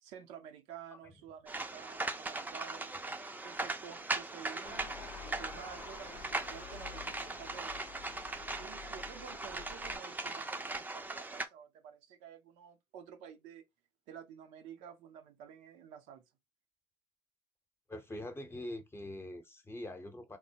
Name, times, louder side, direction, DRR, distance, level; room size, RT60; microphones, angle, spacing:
voice 1, 0.0-2.9 3.4-4.9 5.2-7.8 8.6-13.6 14.1-16.2, right 8 dB, 75° right, 0.5 m, -51 dB
sound 1, 1.5-11.5, right 2 dB, 15° right, 0.5 m, -39 dB
sound 2, 4.6-10.0, left 9 dB, 75° left, 0.6 m, -51 dB
voice 2, 17.9-20.4, left 1 dB, 20° left, 0.7 m, -43 dB
3.1 x 2.1 x 2.7 m
hypercardioid pair, 60°, 12 cm